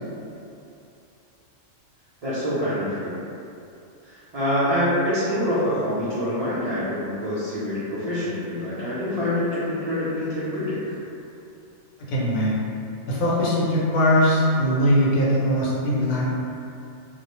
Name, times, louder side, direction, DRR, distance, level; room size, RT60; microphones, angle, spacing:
voice 1, 2.2-3.2 4.0-10.8, left 1 dB, 60° right, -13 dB, 0.4 m, -25 dB
voice 2, 12.1-12.7 13.1-16.2, equal, 80° left, -6 dB, 1.0 m, -21 dB
2.4 x 2.0 x 2.8 m, 2.6 s
omnidirectional pair, 1.4 m